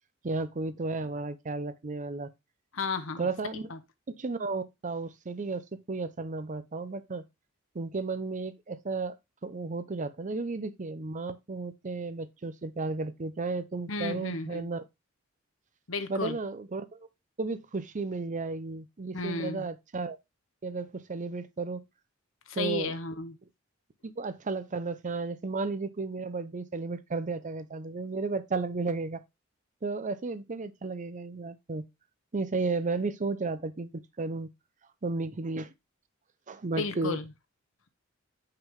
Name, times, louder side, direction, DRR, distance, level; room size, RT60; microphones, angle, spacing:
voice 1, 0.2-2.3 3.2-3.7 4.1-7.2 7.7-9.2 9.4-14.8 16.1-17.1 17.4-20.2 20.6-21.8 22.6-22.9 24.0-29.2 29.8-31.8 32.3-34.5 35.0-35.7 36.5-37.2, right 3 dB, 40° right, 0.6 m, -33 dB
voice 2, 2.7-3.3 3.7-3.8 13.9-14.7 15.9-16.4 19.1-19.7 22.5-23.4 36.8-37.2, left 3 dB, 70° left, 1.0 m, -33 dB
5.7 x 5.4 x 3.5 m
head